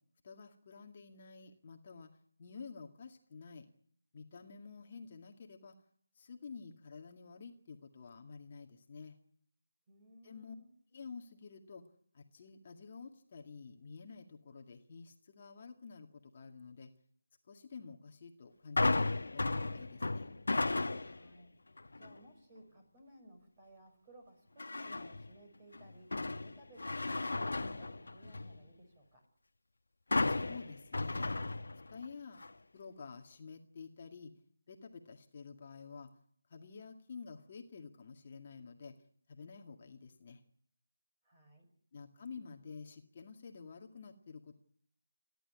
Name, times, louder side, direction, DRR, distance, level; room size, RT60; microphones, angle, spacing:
voice 1, 0.2-2.1 2.4-3.7 4.1-5.7 6.2-9.2 10.2-10.6 10.9-11.8 12.1-16.9 17.5-20.3 30.3-31.5 31.9-32.4 32.7-34.3 34.7-36.1 36.5-38.9 39.3-40.4 41.9-44.5, left 5 dB, 35° left, 3 dB, 2.0 m, -50 dB
voice 2, 9.9-10.7 21.0-21.5 21.9-26.1 26.4-29.2 41.2-41.7, right 1 dB, 20° right, 3 dB, 6.3 m, -59 dB
sound 1, 18.8-21.3 21.8-22.2 24.6-25.3 25.7-28.6 30.1-32.1 32.4-32.5, left 2 dB, 65° left, 1.4 m, -34 dB
30.0 x 11.5 x 9.9 m, 0.63 s
figure-of-eight pair, 160°, 0 cm